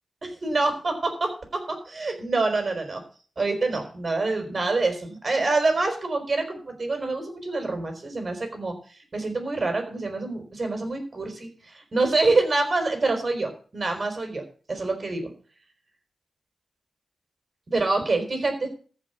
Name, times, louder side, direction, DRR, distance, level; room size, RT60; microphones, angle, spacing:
voice 1, 0.2-3.0 3.4-8.7 9.1-14.4 14.7-15.3 17.7-18.7, right 3 dB, 40° right, 5 dB, 4.7 m, -26 dB
14.5 x 5.6 x 8.2 m, 0.41 s
cardioid pair, 75°, 0 cm